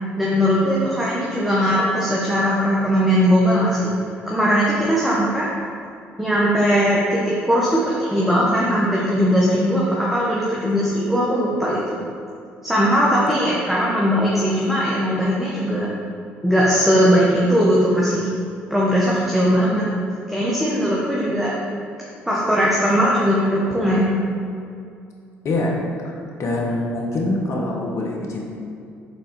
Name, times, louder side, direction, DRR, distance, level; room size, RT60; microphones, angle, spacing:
voice 1, 0.2-3.9 4.3-5.5 6.2-12.0 12.6-15.9 16.4-18.3 18.7-19.8 20.3-21.5 22.3-24.1, equal, 5° right, -6 dB, 1.3 m, -19 dB
voice 2, 25.4-25.8 26.0-28.4, left 2 dB, 55° left, -1 dB, 1.2 m, -24 dB
6.2 x 4.1 x 4.7 m, 2.4 s
hypercardioid pair, 55°, 6 cm